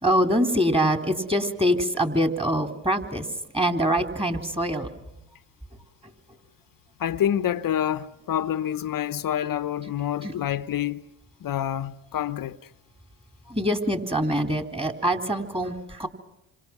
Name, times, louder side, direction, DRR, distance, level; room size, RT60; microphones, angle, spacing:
voice 1, 0.0-4.9 10.2-10.3 13.5-16.1, equal, 10° right, 3.6 m, -24 dB
voice 2, 7.0-11.1 11.4-12.7, left 10 dB, 45° left, 0.9 m, -27 dB
28.0 x 26.0 x 6.1 m
supercardioid pair, 75°, 47 cm